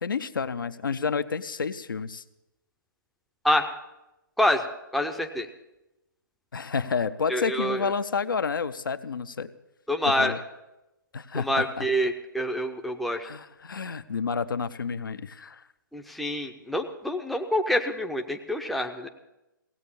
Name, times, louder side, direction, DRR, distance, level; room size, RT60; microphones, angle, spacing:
voice 1, 0.0-2.2 6.5-9.5 10.2-10.4 11.1-11.8 13.2-15.6, left 5 dB, 70° left, 11 dB, 0.7 m, -30 dB
voice 2, 4.9-5.5 7.3-7.9 9.9-10.3 11.3-13.3 15.9-19.1, equal, ahead, 3 dB, 0.6 m, -26 dB
17.0 x 8.2 x 7.0 m, 0.95 s
figure-of-eight pair, 135°, 11 cm